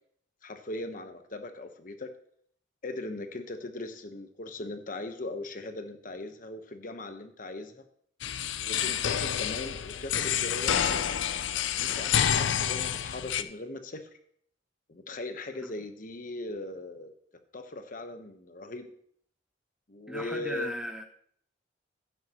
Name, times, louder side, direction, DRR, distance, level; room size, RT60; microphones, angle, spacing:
voice 1, 0.4-2.1 2.8-7.8 8.6-11.2 11.7-14.1 14.9-17.1 17.5-18.9 19.9-20.8, left 2 dB, 45° left, 7 dB, 1.0 m, -39 dB
sound 1, 8.2-13.4, left 9 dB, 85° left, 0.5 m, -28 dB
voice 2, 20.1-21.0, equal, 5° right, 6 dB, 0.7 m, -37 dB
11.5 x 9.9 x 3.0 m, 0.63 s
head